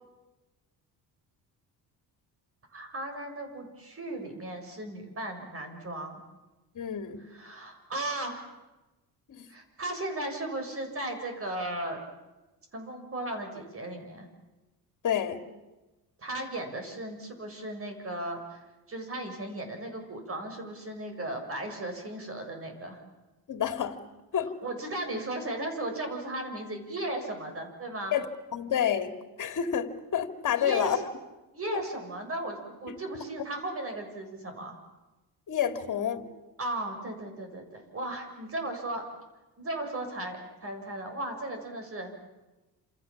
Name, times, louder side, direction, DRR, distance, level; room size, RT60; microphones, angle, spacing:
voice 1, 2.7-6.2 7.3-8.5 9.5-12.0 12.7-14.3 16.2-18.6 18.9-23.0 24.6-28.1 30.5-31.0 31.5-34.8 36.6-39.0 39.6-42.2, right 1 dB, 35° right, 5 dB, 6.8 m, -36 dB
voice 2, 6.7-7.2 9.3-9.5 15.0-15.4 23.5-24.0 24.3-24.5 28.1-28.3 28.5-29.1 29.4-31.0 31.7-31.8 32.9-33.0 35.5-36.3, left 9 dB, 50° left, 8 dB, 2.8 m, -29 dB
29.0 x 28.0 x 7.4 m, 1.1 s
cardioid pair, 125°, 40 cm